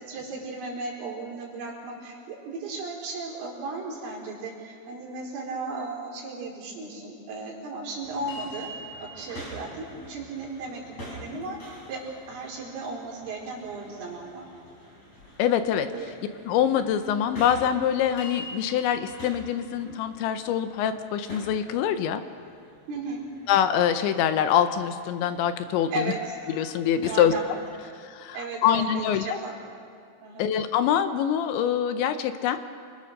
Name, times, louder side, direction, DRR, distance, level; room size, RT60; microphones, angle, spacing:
voice 1, 0.0-8.7 9.1-12.0 12.3-14.4 15.9-16.1 22.9-23.3 25.9-26.4 27.0-27.5 27.8-27.9 28.3-29.5 30.2-30.5, right 3 dB, 70° right, -3 dB, 6.6 m, -35 dB
sound 1, 8.0-27.7, equal, 35° left, 6.0 m, -45 dB
voice 2, 15.4-15.9 16.4-22.2 23.5-26.1 26.5-27.3 28.0-28.4 28.6-29.4 30.4-32.7, left 9 dB, 75° left, 9 dB, 2.8 m, -24 dB
28.5 x 22.0 x 6.6 m, 2.4 s
omnidirectional pair, 5.9 m